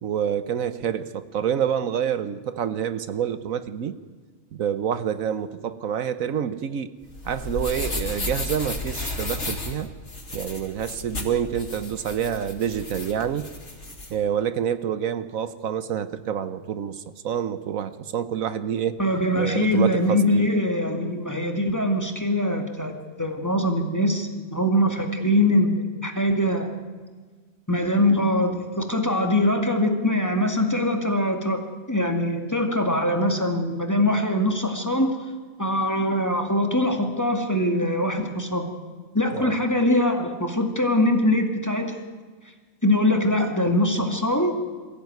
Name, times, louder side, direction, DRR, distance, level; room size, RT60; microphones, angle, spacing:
voice 1, 0.0-4.0 4.5-6.9 7.2-9.9 10.3-13.5 14.1-19.0 19.4-20.5 39.3-39.6, right 8 dB, 75° right, 13 dB, 1.2 m, -27 dB
sound 1, 7.0-14.1, left 2 dB, 55° left, 3.4 m, -33 dB
voice 2, 19.0-22.9 23.2-26.7 27.7-31.6 31.9-35.1 35.6-38.7 39.1-42.0 42.8-44.5, left 1 dB, 10° left, 4 dB, 2.2 m, -22 dB
22.5 x 15.5 x 9.4 m, 1.4 s
omnidirectional pair, 1.5 m